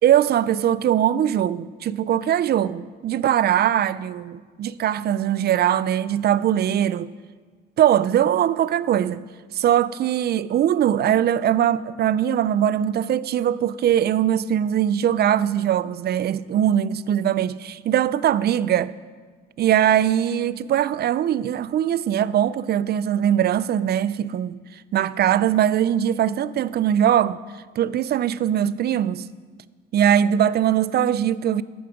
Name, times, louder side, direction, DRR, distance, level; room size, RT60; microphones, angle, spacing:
voice 1, 0.0-7.1 7.8-9.3 9.5-18.9 19.6-24.6 24.9-27.4 27.8-29.3 29.9-31.6, right 10 dB, 55° right, 0.4 m, -21 dB
10.5 x 8.7 x 5.1 m
cardioid pair, 90°, 20 cm